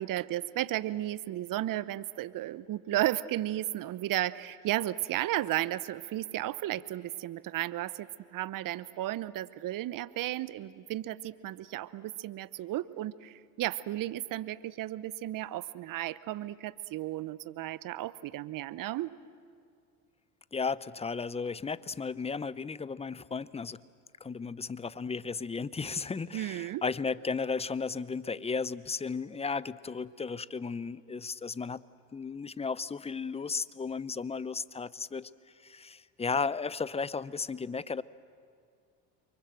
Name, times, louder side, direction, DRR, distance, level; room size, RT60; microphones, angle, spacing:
voice 1, 0.0-19.1 26.3-26.8, right 14 dB, 50° right, 17 dB, 0.9 m, -34 dB
voice 2, 20.5-23.8 24.2-31.8 32.1-35.3 35.6-38.0, left 5 dB, 15° left, 18 dB, 0.6 m, -34 dB
30.0 x 24.0 x 7.7 m, 2.2 s
hypercardioid pair, 75°, 42 cm